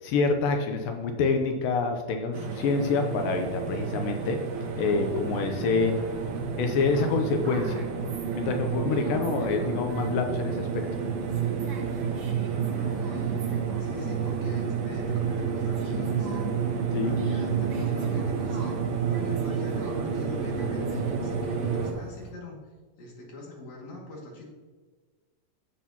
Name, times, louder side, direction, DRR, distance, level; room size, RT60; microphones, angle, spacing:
voice 1, 0.0-4.4 4.8-5.9 6.6-7.8 8.3-10.8 16.9-17.2, left 4 dB, 80° left, 4 dB, 2.4 m, -27 dB
sound 1, 2.3-21.9, right 6 dB, 85° right, 3.0 m, -30 dB
sound 2, 5.8-22.3, right 3 dB, 60° right, 1.2 m, -42 dB
voice 2, 12.5-13.3 13.8-16.5 17.0-18.8 19.1-22.6 23.0-24.5, left 2 dB, 55° left, -3 dB, 3.2 m, -42 dB
10.0 x 7.6 x 2.9 m, 1.4 s
omnidirectional pair, 4.2 m